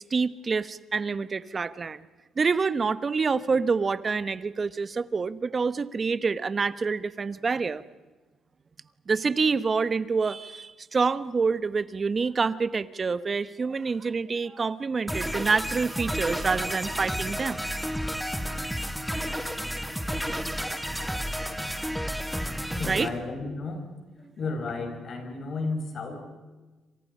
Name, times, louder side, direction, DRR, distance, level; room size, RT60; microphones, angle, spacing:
voice 1, 0.1-2.1 2.4-7.8 9.1-17.6 22.9-23.1, right 4 dB, 35° right, 16 dB, 1.1 m, -27 dB
sound 1, 15.1-23.1, equal, ahead, 2.1 m, -31 dB
voice 2, 22.7-23.8 24.4-26.2, left 3 dB, 55° left, 4 dB, 6.2 m, -33 dB
27.5 x 26.5 x 5.6 m, 1.2 s
cardioid pair, 90°, 0 cm